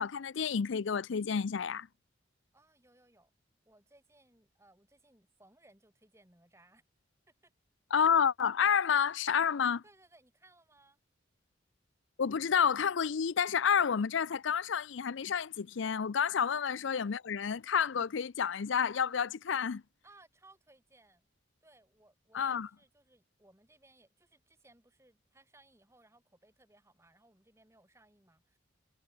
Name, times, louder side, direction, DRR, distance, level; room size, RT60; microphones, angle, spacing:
voice 1, 0.0-1.9 7.9-9.8 12.2-19.8 22.3-22.7, left 7 dB, 70° left, 0.5 m, -30 dB
voice 2, 2.5-3.3 3.6-6.8 7.4-7.5 9.8-11.0 16.2-16.3 20.0-21.3 21.6-28.6, right 2 dB, 15° right, 2.7 m, -64 dB
head